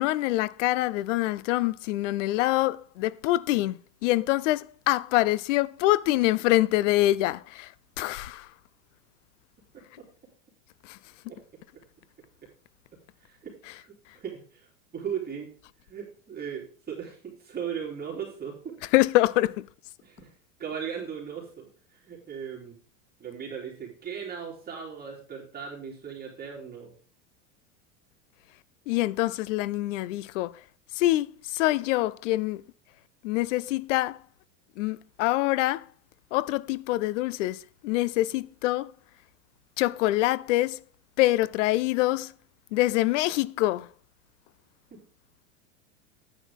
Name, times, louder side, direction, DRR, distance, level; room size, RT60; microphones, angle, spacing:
voice 1, 0.0-8.5 10.8-11.0 18.9-19.6 28.9-30.6 30.9-32.6 33.2-34.2 34.8-35.9 36.3-38.9 39.8-40.8 41.2-42.3 42.7-43.9, left 17 dB, 70° left, 0.6 m, -25 dB
voice 2, 13.2-15.5 15.8-18.7 20.0-20.3 20.6-22.7 23.2-26.9 44.9-45.0, right 7 dB, 25° right, 3.3 m, -38 dB
9.5 x 9.3 x 3.6 m
supercardioid pair, 120°, 38 cm